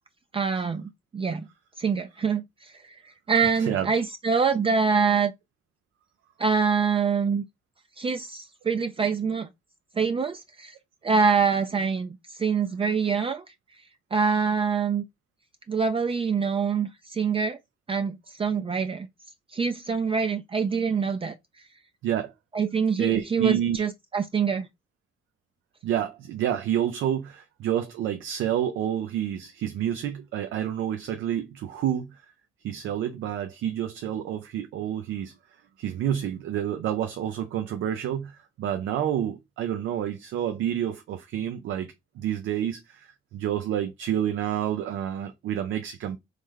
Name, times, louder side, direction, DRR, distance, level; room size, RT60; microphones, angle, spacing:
voice 1, 0.3-1.5 1.8-3.0 3.3-5.3 6.4-7.4 8.0-9.5 10.0-10.7 11.0-13.4 14.1-15.0 15.7-17.6 17.9-19.1 19.5-21.3 22.5-24.7, right 5 dB, 30° right, 0.4 m, -25 dB
voice 2, 3.6-3.9 22.0-22.3 23.0-23.8 25.8-32.2 32.6-35.4 35.8-46.2, right 10 dB, 80° right, 0.6 m, -29 dB
3.2 x 3.1 x 3.7 m
cardioid pair, 90°, 20 cm